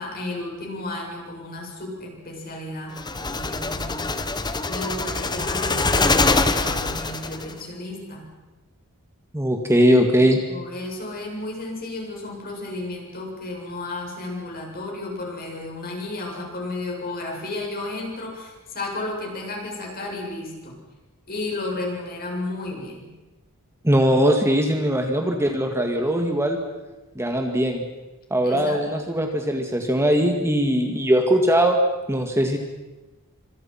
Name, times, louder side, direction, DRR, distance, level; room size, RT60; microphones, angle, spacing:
voice 1, 0.0-8.3 9.9-10.2 10.5-20.8 21.3-23.1 28.4-28.9, left 2 dB, 45° left, 0 dB, 7.7 m, -33 dB
sound 1, 3.0-7.5, left 3 dB, 20° left, 1.3 m, -24 dB
voice 2, 9.3-10.4 23.8-26.6 27.2-27.8 28.3-31.8 32.1-32.6, equal, 10° right, 3 dB, 2.2 m, -20 dB
28.0 x 26.0 x 6.0 m, 1.1 s
head